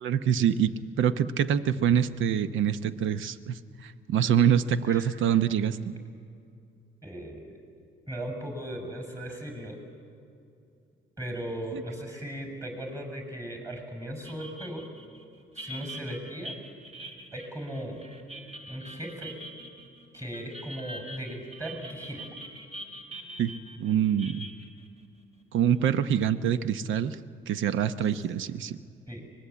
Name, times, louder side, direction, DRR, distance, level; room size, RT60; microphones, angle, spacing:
voice 1, 0.0-5.9 11.7-11.8 23.4-23.5 23.8-24.5 25.5-27.2 27.5-28.8, right 9 dB, 75° right, 12 dB, 0.9 m, -25 dB
voice 2, 7.0-7.7 8.1-9.8 11.2-14.8 15.5-16.5 17.3-18.0 18.7-19.3 20.1-22.3 29.1-29.2, equal, 15° right, 4 dB, 6.6 m, -37 dB
sound 1, 14.2-26.0, right 1 dB, 35° right, 3.2 m, -44 dB
24.5 x 20.0 x 8.5 m, 2.5 s
cardioid pair, 90°, 20 cm